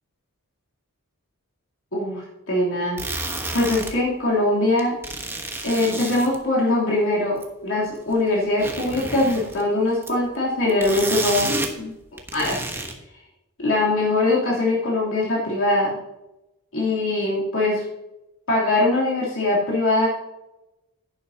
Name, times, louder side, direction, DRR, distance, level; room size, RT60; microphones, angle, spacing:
voice 1, 1.9-3.0 3.5-4.9 5.6-11.9 12.3-12.8 13.6-16.0 16.7-17.8 18.5-20.1, left 2 dB, 65° left, -5 dB, 3.2 m, -22 dB
sound 1, 3.0-3.9 4.8-6.4 7.4-7.5 8.1-8.2 8.5-9.6 10.0-10.3 10.6-11.7 12.0-12.9, right 2 dB, 10° right, 1.2 m, -30 dB
11.5 x 10.5 x 2.9 m, 0.97 s
head